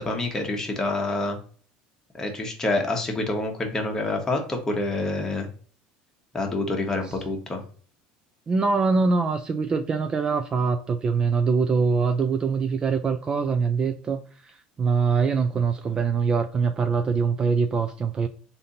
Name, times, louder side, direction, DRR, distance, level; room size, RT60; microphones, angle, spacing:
voice 1, 0.0-1.4 2.1-5.5 6.3-7.6, left 2 dB, 15° left, 1.1 m, -27 dB
voice 2, 8.5-18.3, right 5 dB, 25° right, 0.3 m, -23 dB
3.5 x 2.7 x 4.0 m
supercardioid pair, 125°, 3 cm